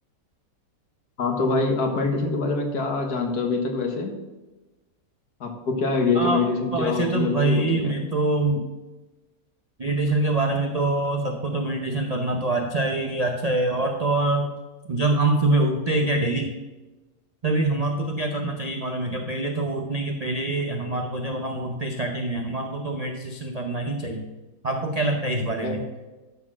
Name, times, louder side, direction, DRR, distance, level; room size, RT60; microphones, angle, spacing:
voice 1, 1.2-4.1 5.4-7.9 25.6-25.8, left 3 dB, 60° left, 3 dB, 1.8 m, -25 dB
voice 2, 6.7-8.6 9.8-14.5 14.9-16.6 17.4-24.3 24.6-25.8, right 2 dB, 80° right, 3 dB, 0.3 m, -25 dB
12.0 x 4.4 x 6.0 m, 1.1 s
omnidirectional pair, 1.9 m